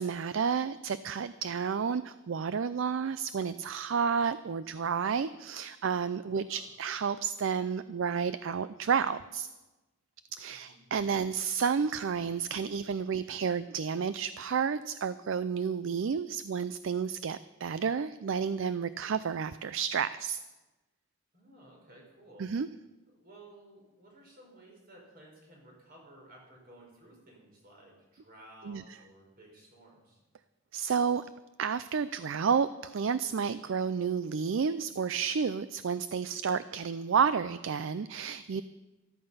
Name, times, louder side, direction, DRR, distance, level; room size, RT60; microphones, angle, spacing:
voice 1, 0.0-9.5 10.3-20.4 22.4-22.7 28.6-28.8 30.7-31.3 31.6-38.6, right 6 dB, 60° right, 14 dB, 0.4 m, -31 dB
voice 2, 6.3-6.7 10.5-10.8 21.3-22.5 23.1-30.2, right 1 dB, 45° right, -1 dB, 5.1 m, -55 dB
14.0 x 13.0 x 5.6 m, 1.1 s
head